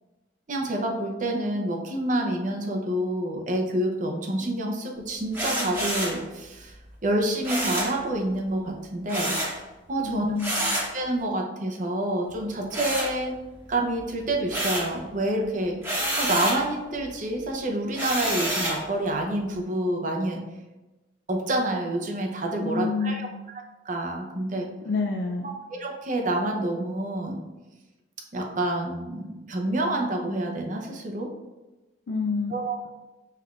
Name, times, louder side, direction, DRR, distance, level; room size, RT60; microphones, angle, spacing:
voice 1, 0.5-6.7 7.0-9.4 9.9-10.3 10.6-13.3 13.7-20.4 21.3-23.3 23.9-24.7 25.4-27.4 28.3-31.3 32.5-32.9, right 1 dB, 40° right, 1 dB, 0.6 m, -28 dB
sound 1, 5.3-6.2 7.4-8.0 9.1-9.6 10.4-10.9 12.7-13.6 14.0-15.0 15.8-16.6 17.9-18.8, right 1 dB, 10° right, 1.0 m, -28 dB
voice 2, 10.0-10.8 22.6-23.4 24.8-25.5 32.1-32.5, left 4 dB, 60° left, 2 dB, 0.3 m, -28 dB
5.6 x 3.2 x 2.4 m, 1.1 s
head